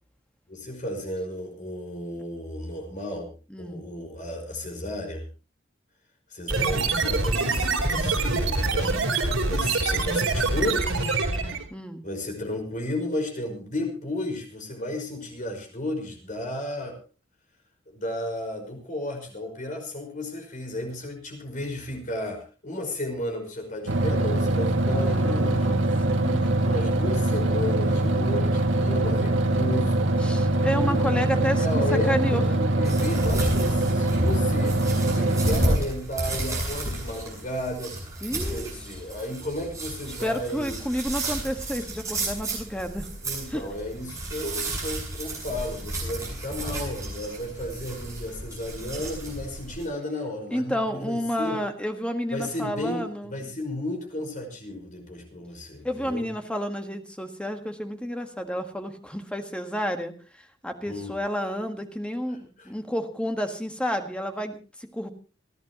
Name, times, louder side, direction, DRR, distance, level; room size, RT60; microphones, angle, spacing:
voice 1, 0.5-3.3 3.6-5.3 6.3-9.0 9.5-10.8 12.0-17.0 17.9-25.7 26.2-30.1 30.8-31.2 31.5-37.9 38.5-40.9 43.2-51.6 52.3-56.3 60.9-61.1 62.6-62.7, left 1 dB, 40° left, 3 dB, 5.2 m, -33 dB
voice 2, 3.5-3.8 11.7-12.0 24.9-25.8 26.1-26.5 30.2-32.5 35.2-35.7 38.2-38.7 40.2-43.1 43.5-43.6 50.5-53.3 55.8-60.1 60.6-65.1, equal, 5° left, 6 dB, 1.6 m, -30 dB
sound 1, 6.5-11.6, right 3 dB, 85° right, 4.0 m, -25 dB
sound 2, 23.9-35.8, right 1 dB, 70° right, 1.7 m, -23 dB
sound 3, 32.8-49.8, right 1 dB, 15° right, 7.9 m, -32 dB
28.5 x 11.0 x 3.0 m, 0.35 s
head